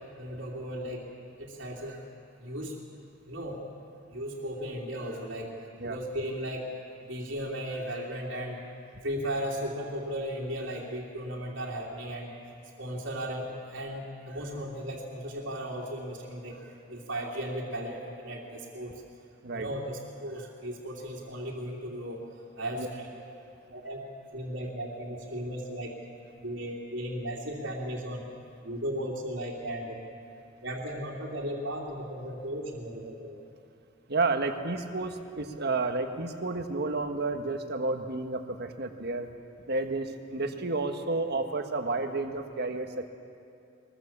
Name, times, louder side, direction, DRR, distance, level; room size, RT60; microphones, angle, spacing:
voice 1, 0.2-1.1 1.4-2.0 2.4-2.7 3.3-3.6 4.1-5.5 5.8-6.7 7.1-8.6 9.0-12.3 12.8-18.9 19.5-22.2 22.6-23.2 23.7-24.0 24.3-26.0 26.4-28.2 28.6-30.0 30.6-33.4, equal, 70° right, -5 dB, 2.9 m, -36 dB
voice 2, 34.1-39.3 39.7-43.1, right 3 dB, 55° right, 6 dB, 1.5 m, -31 dB
22.5 x 21.5 x 7.3 m, 2.6 s
head